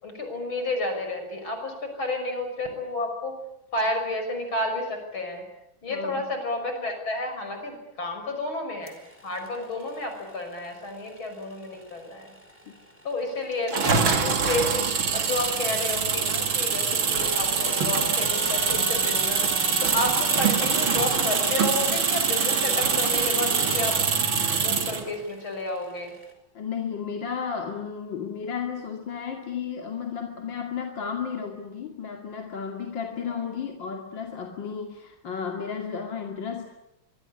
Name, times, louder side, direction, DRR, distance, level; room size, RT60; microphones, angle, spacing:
voice 1, 0.0-3.4 3.7-5.4 5.8-9.0 9.2-12.3 13.0-14.9 15.1-24.0 24.6-26.1, left 2 dB, 90° left, 5 dB, 6.7 m, -31 dB
voice 2, 5.9-6.2 12.7-12.8 26.5-36.7, left 6 dB, 65° left, 3 dB, 3.1 m, -33 dB
sound 1, 8.9-26.3, equal, 5° right, 4.8 m, -38 dB
sound 2, 13.7-25.1, right 6 dB, 85° right, 3.2 m, -24 dB
24.5 x 24.0 x 9.7 m, 0.86 s
omnidirectional pair, 2.2 m